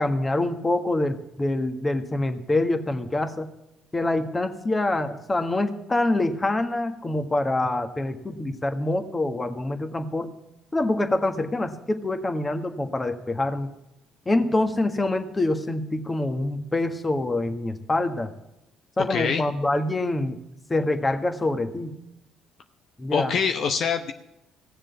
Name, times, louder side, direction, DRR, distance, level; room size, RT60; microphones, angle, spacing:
voice 1, 0.0-3.5 3.9-10.4 10.7-13.7 14.2-18.3 19.0-20.4 20.7-22.0 23.0-23.3, left 2 dB, 25° left, 7 dB, 1.6 m, -25 dB
voice 2, 19.0-19.4 23.1-24.1, left 6 dB, 55° left, 6 dB, 0.9 m, -25 dB
17.0 x 7.3 x 7.1 m, 0.92 s
hypercardioid pair, 55°, 0 cm